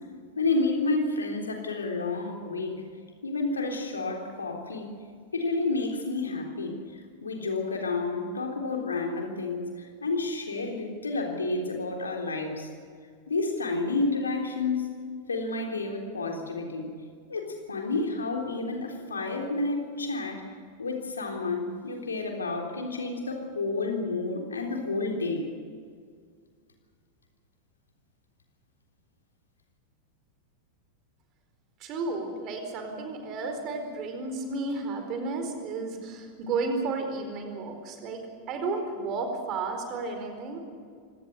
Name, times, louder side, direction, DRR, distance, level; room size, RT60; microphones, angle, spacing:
voice 1, 0.4-2.8 3.2-5.0 5.3-6.8 7.2-12.7 13.3-14.9 15.3-16.9 17.3-20.5 20.8-25.5, left 3 dB, 75° left, 2 dB, 3.5 m, -30 dB
voice 2, 31.8-38.2 38.5-40.6, right 3 dB, 35° right, 5 dB, 4.4 m, -32 dB
25.0 x 18.0 x 6.7 m, 2.1 s
figure-of-eight pair, 90°, 0 cm